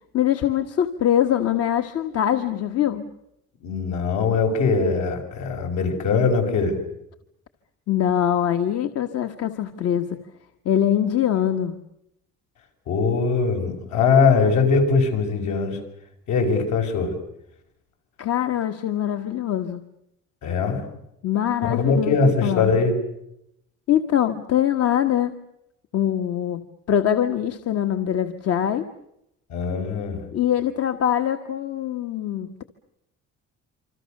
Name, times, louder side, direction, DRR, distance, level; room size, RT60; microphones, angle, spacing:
voice 1, 0.1-3.0 7.9-10.2 10.6-11.8 18.2-19.8 21.2-22.7 23.9-25.3 25.9-28.9 30.3-32.6, left 10 dB, 55° left, 8 dB, 1.4 m, -23 dB
voice 2, 3.6-6.8 12.9-15.8 16.3-17.1 20.4-20.8 21.6-22.9 29.5-30.3, left 4 dB, 75° left, 4 dB, 6.6 m, -21 dB
27.5 x 26.0 x 6.7 m, 0.80 s
cardioid pair, 155°, 29 cm